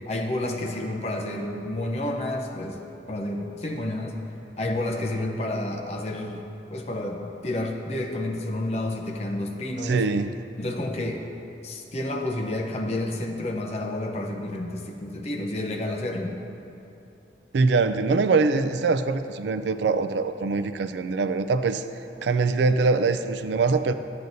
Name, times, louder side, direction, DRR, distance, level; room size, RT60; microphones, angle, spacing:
voice 1, 0.1-2.8 3.1-4.2 4.6-6.4 6.7-10.1 10.6-11.2 11.6-16.3, left 1 dB, 35° left, 2 dB, 0.7 m, -30 dB
voice 2, 9.8-10.3 17.5-21.8 22.2-23.9, right 4 dB, 80° right, 10 dB, 0.4 m, -23 dB
11.5 x 7.7 x 2.7 m, 2.9 s
head